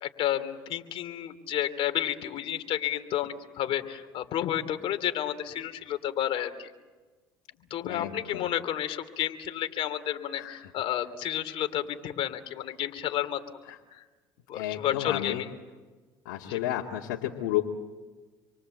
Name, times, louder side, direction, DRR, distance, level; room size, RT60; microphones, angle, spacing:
voice 1, 0.0-6.7 7.7-13.4 13.9-14.0 14.5-15.5 16.4-16.8, left 11 dB, 60° left, 8 dB, 3.0 m, -31 dB
voice 2, 7.9-8.5 10.4-10.7 13.7-13.8 14.5-15.4 16.3-17.7, left 13 dB, 85° left, -1 dB, 2.2 m, -32 dB
28.0 x 24.0 x 8.0 m, 1.3 s
supercardioid pair, 85°, 10 cm